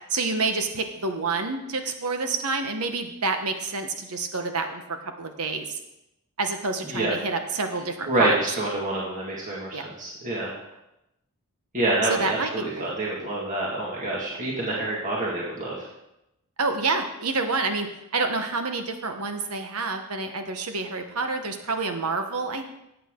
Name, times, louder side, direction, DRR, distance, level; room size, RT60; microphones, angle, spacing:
voice 1, 0.1-5.8 6.4-8.4 9.7-9.9 12.0-12.9 16.6-22.6, right 3 dB, 80° right, 6 dB, 1.2 m, -28 dB
voice 2, 8.1-10.6 11.7-15.9, right 2 dB, 35° right, -4 dB, 2.0 m, -27 dB
14.5 x 8.4 x 3.8 m, 0.88 s
head